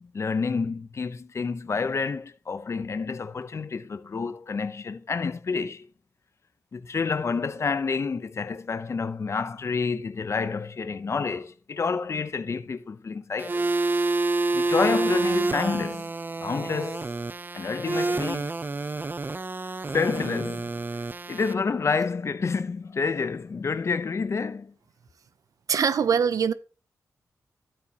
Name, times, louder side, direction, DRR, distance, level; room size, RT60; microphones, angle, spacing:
voice 1, 0.0-5.9 6.7-13.7 14.5-16.1 16.4-17.0 17.5-18.5 19.9-21.0 21.3-24.7, left 5 dB, 50° left, 0.7 m, -29 dB
sound 1, 13.4-21.5, right 3 dB, 30° right, 0.6 m, -28 dB
voice 2, 25.7-26.5, right 7 dB, 70° right, 0.6 m, -22 dB
12.0 x 8.5 x 2.9 m
cardioid pair, 75°, 6 cm